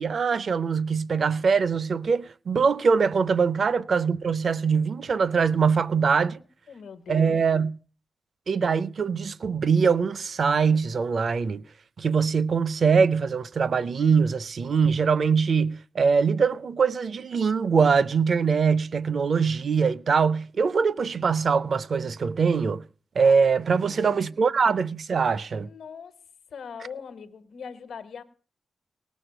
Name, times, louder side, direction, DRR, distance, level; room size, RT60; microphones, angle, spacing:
voice 1, 0.0-6.4 7.1-7.8 8.5-11.6 12.0-22.8 23.2-25.7, right 5 dB, 55° right, 0.6 m, -23 dB
voice 2, 6.7-7.4 23.8-24.7 25.5-26.2 26.5-28.2, left 6 dB, 90° left, 1.2 m, -41 dB
18.5 x 6.4 x 7.7 m
wide cardioid pair, 140°, 0 cm